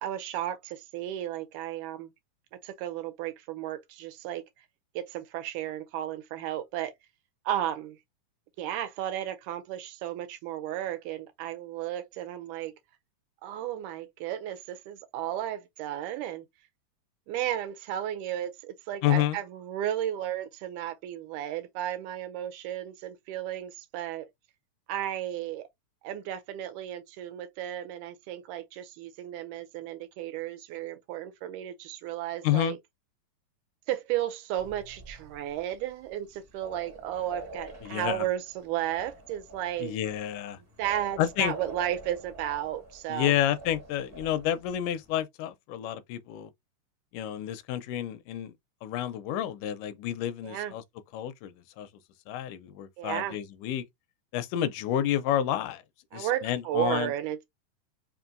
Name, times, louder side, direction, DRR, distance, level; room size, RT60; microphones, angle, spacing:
voice 1, 0.0-2.1 2.6-4.4 5.0-6.9 7.5-8.0 8.6-12.7 13.4-16.5 17.3-24.3 24.9-25.7 26.0-32.8 33.9-40.0 40.8-43.3 50.4-50.7 53.0-53.4 56.1-57.4, right 12 dB, 85° right, 2.1 m, -34 dB
voice 2, 19.0-19.4 32.4-32.8 37.8-38.3 39.8-40.6 41.2-41.5 43.1-46.5 47.1-48.5 48.8-50.8 51.1-51.9 52.3-53.8 54.3-55.8 56.1-57.1, left 11 dB, 85° left, 2.1 m, -29 dB
sound 1, 34.6-45.2, right 1 dB, 15° right, 0.5 m, -47 dB
5.2 x 2.7 x 2.5 m
omnidirectional pair, 3.6 m